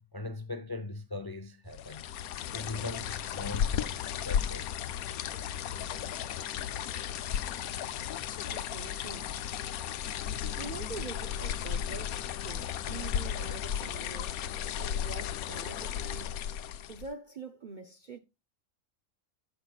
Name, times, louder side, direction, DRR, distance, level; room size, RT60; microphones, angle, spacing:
voice 1, 0.0-2.1 2.5-4.7, left 2 dB, 30° left, 0.4 m, -40 dB
sound 1, 1.7-17.1, left 9 dB, 85° left, 1.1 m, -35 dB
voice 2, 8.4-9.3 10.6-16.4 16.8-18.2, right 4 dB, 50° right, 0.5 m, -45 dB
14.5 x 5.9 x 2.3 m
omnidirectional pair, 1.5 m